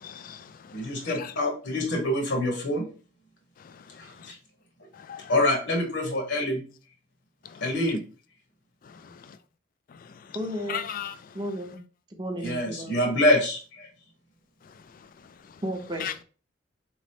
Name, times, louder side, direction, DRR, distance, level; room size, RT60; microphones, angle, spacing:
voice 1, 0.0-1.3 3.6-3.7 4.2-4.3 5.0-5.3 7.5-7.6 9.0-9.1 10.7-11.1 16.0-16.1, left 9 dB, 45° left, 0.3 m, -37 dB
voice 2, 0.7-2.9 4.0-4.4 5.3-6.6 7.6-8.0 12.4-13.9, left 1 dB, 60° left, 1.2 m, -26 dB
voice 3, 10.3-10.9 11.3-11.8 12.2-12.9 15.6-16.2, equal, 20° right, 0.7 m, -33 dB
4.1 x 3.0 x 2.8 m
head